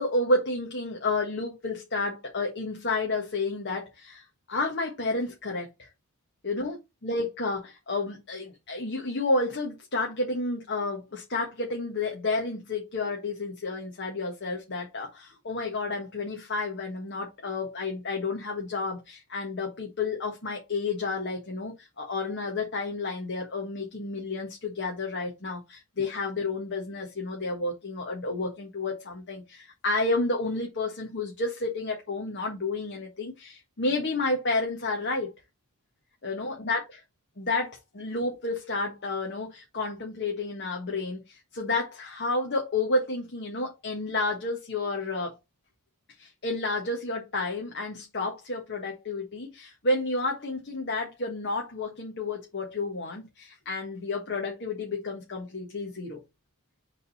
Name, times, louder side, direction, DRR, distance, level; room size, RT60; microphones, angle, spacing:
voice 1, 0.0-5.9 6.4-35.3 36.2-36.8 37.4-45.3 46.2-56.2, left 2 dB, 50° left, 1.5 m, -31 dB
7.0 x 4.0 x 4.2 m
head